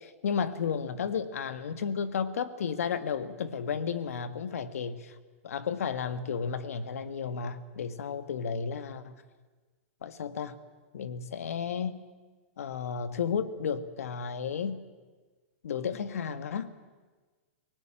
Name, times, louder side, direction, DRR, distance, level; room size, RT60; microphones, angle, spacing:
voice 1, 0.0-5.1 5.4-9.2 10.0-10.6 10.9-12.0 12.6-14.8 15.6-16.7, left 6 dB, 85° left, 11 dB, 1.7 m, -33 dB
24.0 x 19.0 x 9.0 m, 1.4 s
hypercardioid pair, 145°, 8 cm